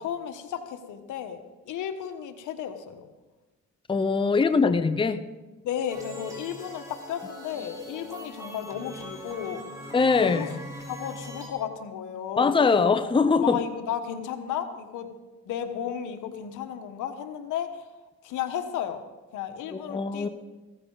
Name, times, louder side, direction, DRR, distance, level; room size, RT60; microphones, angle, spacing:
voice 1, 0.0-1.4 1.7-3.1 4.6-4.7 5.6-9.8 10.2-10.5 10.9-12.9 13.4-15.1 15.4-17.9 18.2-19.0 19.3-20.3, left 9 dB, 85° left, 1.3 m, -33 dB
voice 2, 3.9-5.2 9.9-10.5 12.4-13.6 19.7-20.3, left 4 dB, 15° left, 0.7 m, -22 dB
sound 1, 5.9-11.5, equal, 10° right, 4.3 m, -42 dB
16.0 x 14.5 x 4.0 m
cardioid pair, 90°, 30 cm